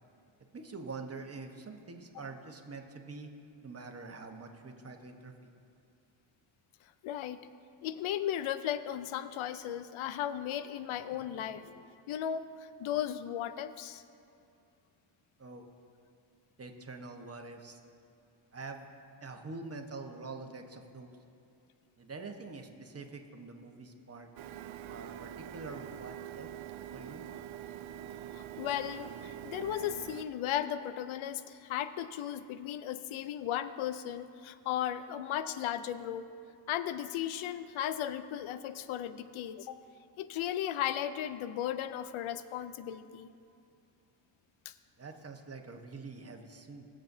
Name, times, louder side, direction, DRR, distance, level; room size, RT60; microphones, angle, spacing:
voice 1, 0.5-3.3 3.6-5.5 15.4-15.6 16.6-17.8 18.5-18.9 19.2-21.2 22.0-24.3 24.9-26.5 26.9-27.2 45.0-46.9, right 3 dB, 30° right, 4 dB, 1.2 m, -45 dB
voice 2, 7.0-7.4 7.8-12.5 12.8-14.0 28.3-36.3 36.7-39.8 40.2-43.3 44.7-44.8, left 10 dB, 85° left, 13 dB, 0.6 m, -36 dB
Printer, 24.4-30.2, right 11 dB, 80° right, 0.6 m, -44 dB
21.5 x 7.6 x 2.7 m, 2.5 s
cardioid pair, 75°, 47 cm